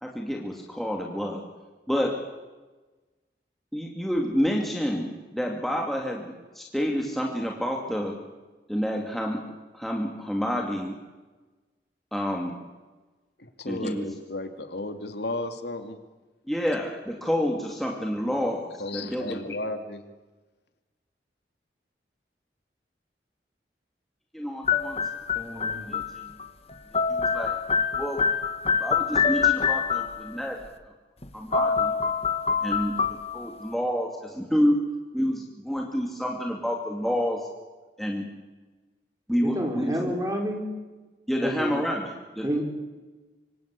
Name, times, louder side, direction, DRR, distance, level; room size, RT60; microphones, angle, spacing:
voice 1, 0.0-1.4 1.9-2.2 3.7-8.2 8.7-9.4 9.7-11.0 12.1-12.5 13.7-14.1 16.5-19.5 24.3-25.0 25.9-26.2 27.1-27.6 28.0-28.2 28.8-30.6 31.3-31.9 32.6-32.9 33.3-34.8 35.1-37.5 38.0-38.3 39.3-40.1 41.3-42.5, equal, ahead, 0 dB, 2.6 m, -28 dB
voice 2, 13.4-16.0 18.8-20.0, left 2 dB, 75° left, 7 dB, 2.5 m, -34 dB
sound 1, 24.7-26.5 26.7-30.3 31.2-31.3 31.5-33.7, left 6 dB, 35° left, 1.5 m, -25 dB
voice 3, 25.3-26.0 39.4-40.7 41.4-41.7 42.4-42.6, equal, 20° right, 2 dB, 5.1 m, -29 dB
25.5 x 25.5 x 8.4 m, 1.2 s
head